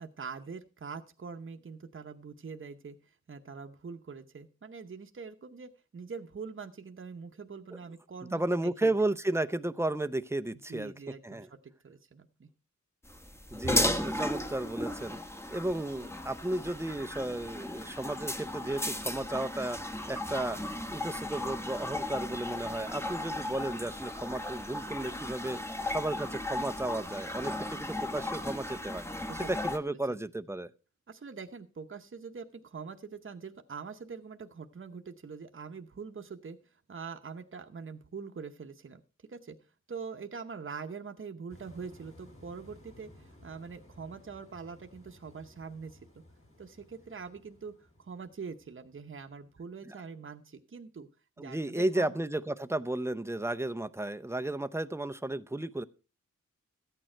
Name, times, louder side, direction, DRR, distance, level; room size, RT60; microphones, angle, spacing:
voice 1, 0.0-8.9 10.7-12.5 29.3-29.5 29.9-30.2 31.1-36.6 36.9-39.0 39.3-39.6 39.9-46.1 46.6-47.7 48.0-51.1 51.4-52.1, right 5 dB, 40° right, 5 dB, 0.9 m, -44 dB
voice 2, 8.3-10.9 11.2-11.5 13.5-15.2 15.5-19.8 20.1-20.6 20.9-29.1 29.5-30.7 49.8-50.0 51.4-55.8, right 1 dB, 10° right, 11 dB, 0.6 m, -33 dB
sound 1, 13.1-29.8, left 1 dB, 10° left, 1.1 m, -35 dB
sound 2, 41.5-49.7, left 1 dB, 45° left, 6.2 m, -57 dB
13.5 x 8.9 x 4.4 m, 0.35 s
wide cardioid pair, 85°, 30 cm